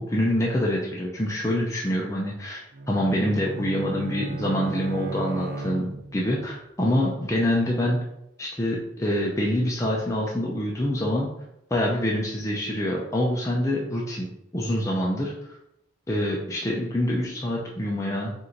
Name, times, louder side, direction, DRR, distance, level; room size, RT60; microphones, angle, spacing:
voice 1, 0.0-2.6 2.9-8.0 8.4-11.3 11.7-14.3 14.5-15.3 16.1-18.3, left 1 dB, 15° left, -3 dB, 0.5 m, -26 dB
Bowed string instrument, 2.7-6.4, right 2 dB, 50° right, 0.4 m, -34 dB
4.3 x 2.6 x 3.8 m, 0.81 s
head